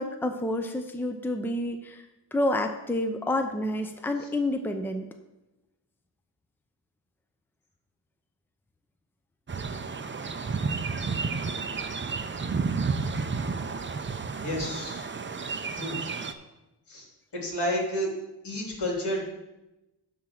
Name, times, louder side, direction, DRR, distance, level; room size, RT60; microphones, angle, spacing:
voice 1, 0.0-2.0 2.3-5.1, left 1 dB, 5° left, 6 dB, 0.7 m, -29 dB
sound 1, 9.5-16.3, right 4 dB, 25° right, 0.7 m, -31 dB
voice 2, 14.4-15.0 15.7-16.0 16.9-17.1 17.3-18.1 18.4-19.2, equal, 70° left, -2 dB, 3.2 m, -30 dB
10.0 x 3.8 x 7.4 m, 0.98 s
cardioid pair, 80°, 42 cm